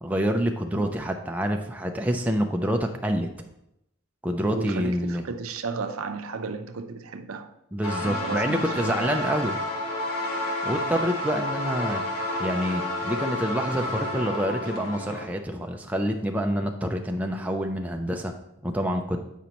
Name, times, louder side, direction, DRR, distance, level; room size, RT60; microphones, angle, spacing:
voice 1, 0.0-3.3 4.2-5.2 7.7-9.6 10.6-12.0 12.4-18.3 18.6-19.2, equal, 5° right, 0.3 m, -27 dB
voice 2, 4.5-7.5 8.0-9.4, right 4 dB, 80° right, 0.6 m, -34 dB
sound 1, 7.8-15.3, left 1 dB, 85° left, 1.2 m, -30 dB
8.1 x 5.1 x 2.9 m
head